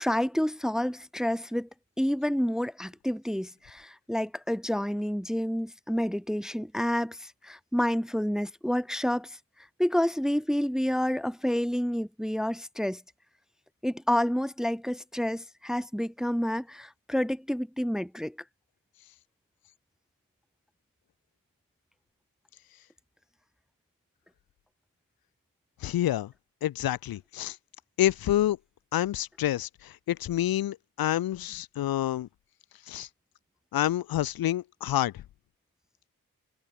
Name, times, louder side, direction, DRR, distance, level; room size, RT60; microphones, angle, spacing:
voice 1, 0.0-1.7 2.0-9.4 9.8-13.0 13.8-18.4, equal, ahead, 0.6 m, -29 dB
voice 2, 25.8-26.3 26.6-27.6 28.0-28.6 28.9-29.7 30.1-32.3 32.9-33.1 33.7-35.1, left 13 dB, 85° left, 0.8 m, -27 dB
wide cardioid pair, 125°, 35 cm